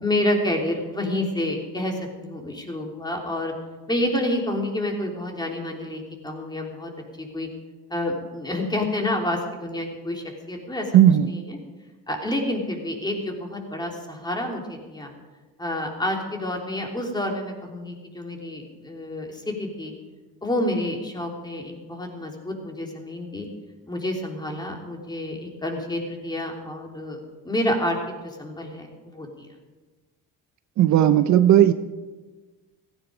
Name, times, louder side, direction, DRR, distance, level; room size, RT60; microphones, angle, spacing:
voice 1, 0.0-3.5 3.9-6.9 7.2-7.5 7.9-10.9 11.2-11.6 12.1-15.1 15.6-19.9 20.4-23.5 23.9-29.5, left 1 dB, 10° left, 1 dB, 3.2 m, -29 dB
voice 2, 10.9-11.3 30.8-31.7, right 11 dB, 55° right, 11 dB, 0.7 m, -15 dB
16.5 x 16.0 x 5.0 m, 1.3 s
cardioid pair, 115°, 34 cm